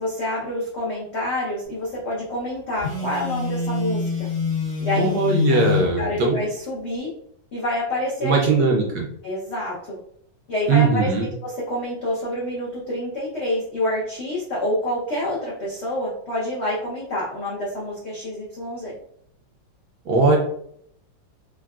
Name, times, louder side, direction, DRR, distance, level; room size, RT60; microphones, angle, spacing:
voice 1, 0.0-4.3 4.8-5.1 5.5-7.1 7.5-8.5 9.2-10.0 10.5-18.9, left 1 dB, 80° left, -6 dB, 0.5 m, -27 dB
Telephone, 2.8-5.9, left 6 dB, 25° left, 0.7 m, -25 dB
voice 2, 5.0-6.4 8.2-9.1 10.7-11.3 20.1-20.4, right 4 dB, 70° right, -1 dB, 1.0 m, -19 dB
3.6 x 2.2 x 2.3 m, 0.68 s
omnidirectional pair, 2.1 m